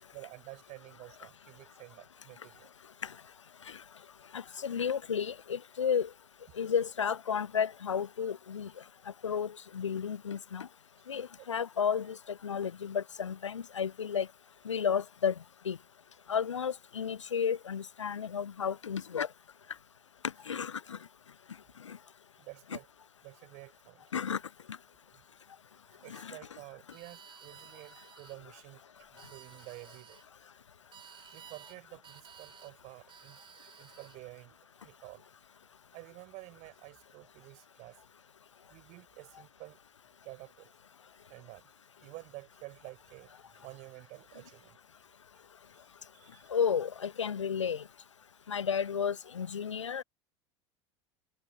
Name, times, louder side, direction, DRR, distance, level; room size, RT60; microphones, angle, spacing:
voice 1, 0.1-2.7 11.4-11.5 18.1-18.2 22.4-22.9 23.2-24.0 26.0-28.8 29.1-30.2 31.3-33.4 33.8-34.6 34.8-35.2 35.9-38.0 38.7-39.8 40.2-40.7 41.3-41.7 42.0-44.8 46.1-46.5, right 22 dB, 55° right, 5.4 m, -50 dB
voice 2, 4.3-6.1 6.6-8.7 9.2-10.7 11.1-12.2 12.4-14.3 14.7-15.3 15.7-15.8 16.3-19.3 20.5-21.0 21.9-22.0 24.1-24.4 26.1-26.4 46.5-47.8 48.5-50.0, left 7 dB, 85° left, 0.5 m, -32 dB
sound 1, 26.9-28.4 29.0-30.2 30.9-32.7 33.1-34.2, right 8 dB, 35° right, 5.3 m, -54 dB
figure-of-eight pair, 75°, 15 cm